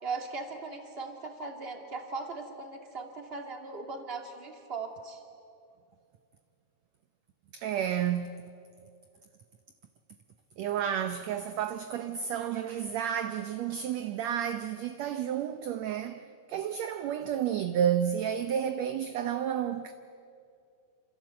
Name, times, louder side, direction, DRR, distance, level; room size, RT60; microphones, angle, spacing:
voice 1, 0.0-5.2, right 4 dB, 20° right, 2.3 m, -39 dB
voice 2, 7.5-8.4 10.6-19.9, right 9 dB, 70° right, 1.8 m, -31 dB
28.0 x 27.0 x 7.7 m
omnidirectional pair, 3.7 m